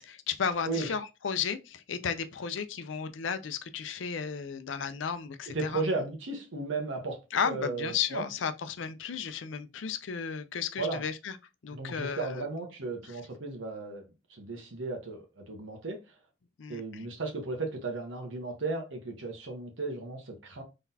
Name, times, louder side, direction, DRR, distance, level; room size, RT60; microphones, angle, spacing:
voice 1, 0.0-5.8 7.3-11.4 11.6-12.5 16.6-17.0, left 6 dB, 70° left, 0.5 m, -34 dB
voice 2, 5.5-8.3 10.8-11.0 11.7-16.1 16.7-20.6, right 3 dB, 80° right, 1.1 m, -35 dB
3.8 x 3.4 x 2.7 m
head